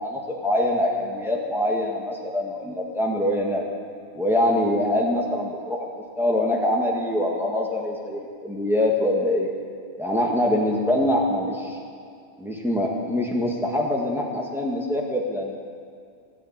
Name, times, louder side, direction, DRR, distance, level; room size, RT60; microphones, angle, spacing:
voice 1, 0.0-3.6 4.1-5.9 6.2-9.5 10.0-11.8 12.4-15.6, left 1 dB, ahead, -2 dB, 2.0 m, -24 dB
14.5 x 10.0 x 9.2 m, 2.3 s
omnidirectional pair, 1.2 m